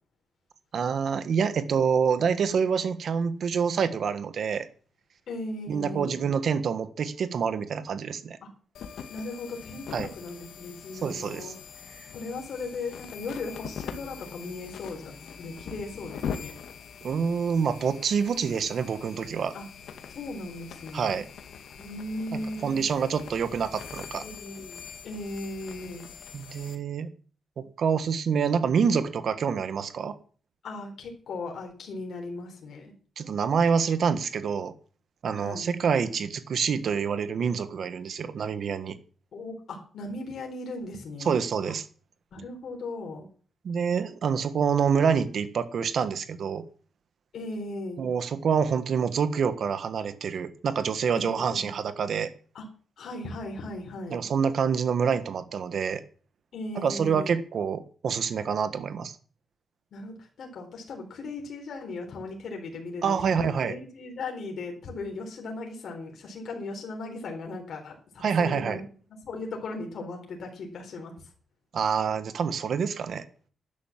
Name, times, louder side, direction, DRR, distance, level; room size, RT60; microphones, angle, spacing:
voice 1, 0.7-4.7 5.7-8.4 9.9-10.1 11.0-11.5 12.0-12.1 17.0-19.5 20.9-21.3 22.3-24.2 26.3-27.1 27.6-30.1 33.2-34.7 35.2-39.0 41.2-41.8 43.6-46.6 48.0-52.3 54.1-56.0 56.7-59.2 63.0-63.7 68.2-68.8 71.7-73.2, right 6 dB, 50° right, 12 dB, 1.5 m, -27 dB
voice 2, 5.3-6.2 9.1-11.5 12.1-16.5 19.5-19.6 20.1-21.2 21.8-22.8 24.2-26.1 30.6-32.9 35.3-35.7 39.3-41.4 42.3-43.3 47.3-48.0 51.1-51.8 52.5-52.6 53.0-54.2 56.5-57.3 59.9-68.8 69.2-71.1, left 2 dB, 55° left, 1 dB, 4.2 m, -37 dB
sound 1, 8.7-26.8, left 7 dB, 75° left, 2.1 m, -42 dB
12.0 x 10.5 x 7.4 m, 0.42 s
wide cardioid pair, 170°, 0 cm